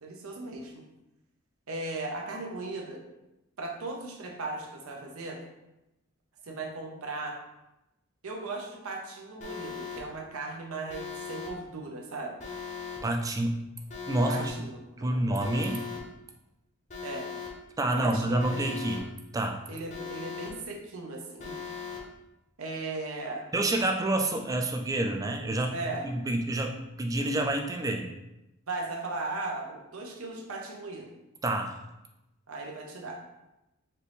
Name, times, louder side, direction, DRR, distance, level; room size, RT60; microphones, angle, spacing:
voice 1, 0.0-0.8 1.7-3.0 3.6-5.4 6.4-7.4 8.2-12.4 14.3-15.2 17.0-17.3 18.0-18.6 19.7-21.6 22.6-23.5 25.7-26.0 28.7-31.1 32.5-33.2, right 3 dB, 90° right, 1 dB, 0.8 m, -37 dB
Alarm, 9.4-10.0 10.9-11.5 12.4-13.0 13.9-14.5 15.4-16.0 16.9-17.5 18.4-19.0 19.9-20.5 21.4-22.0, left 6 dB, 35° left, 0.7 m, -39 dB
voice 2, 13.0-13.6 14.1-14.5 15.0-15.8 17.8-19.0 19.3-19.6 23.5-25.7 26.0-28.0 31.4-31.7, right 1 dB, 15° right, 3 dB, 0.3 m, -28 dB
4.3 x 2.6 x 3.4 m, 0.95 s
head